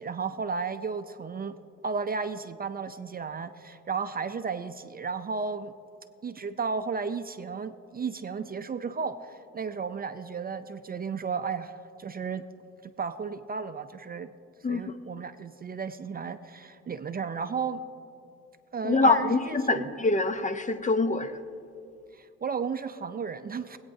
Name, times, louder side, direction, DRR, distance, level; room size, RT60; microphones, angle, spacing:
voice 1, 0.0-1.6 1.8-5.7 6.2-12.4 12.8-14.3 14.7-17.8 18.7-19.9 22.1-23.8, right 5 dB, 30° right, 10 dB, 0.5 m, -34 dB
voice 2, 18.8-21.4, left 3 dB, 25° left, 10 dB, 0.6 m, -25 dB
24.0 x 8.8 x 2.7 m, 2.5 s
cardioid pair, 90°, 30 cm